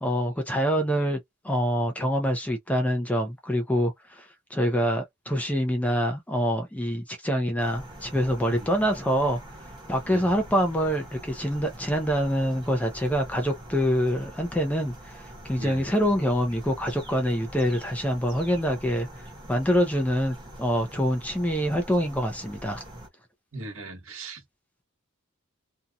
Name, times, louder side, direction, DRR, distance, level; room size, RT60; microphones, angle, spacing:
voice 1, 0.0-1.2 1.4-9.4 9.9-19.1 19.5-22.8, equal, 5° left, 0.5 m, -25 dB
sound 1, 7.6-23.1, right 1 dB, 20° right, 1.0 m, -44 dB
voice 2, 15.6-15.9 23.5-24.4, right 2 dB, 65° right, 1.2 m, -39 dB
2.7 x 2.4 x 2.3 m
head